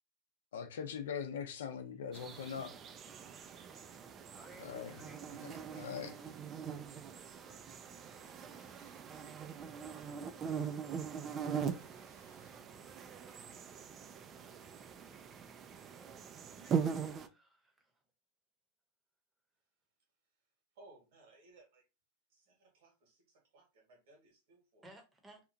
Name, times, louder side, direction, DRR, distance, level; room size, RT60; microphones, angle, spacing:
voice 1, 0.5-2.8 4.6-4.9 5.4-6.2, left 7 dB, 85° left, 0.6 m, -41 dB
sound 1, 2.1-17.3, right 7 dB, 30° right, 0.3 m, -42 dB
voice 2, 4.3-5.3 15.9-16.3 16.6-17.9 24.8-25.4, right 1 dB, 10° right, 0.8 m, -59 dB
voice 3, 20.7-21.8 22.3-24.8, right 2 dB, 65° right, 1.4 m, -63 dB
2.8 x 2.3 x 2.5 m
supercardioid pair, 125°, 0 cm